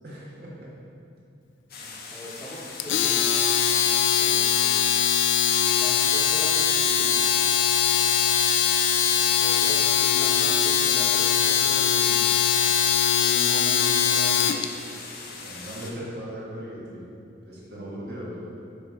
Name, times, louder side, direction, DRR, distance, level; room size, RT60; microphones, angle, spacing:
voice 1, 0.0-0.7 1.7-2.1 15.4-17.1 17.4-18.5, equal, 60° right, -6 dB, 1.6 m, -38 dB
sound 1, 1.7-15.9, left 4 dB, 55° left, 0.8 m, -41 dB
voice 2, 1.8-3.4 4.2-5.0 5.7-7.2 9.4-12.6 13.3-15.1, equal, 15° left, -6 dB, 1.0 m, -40 dB
Domestic sounds home sounds, 2.8-14.6, left 8 dB, 85° left, 0.4 m, -21 dB
6.5 x 4.2 x 4.9 m, 2.6 s
head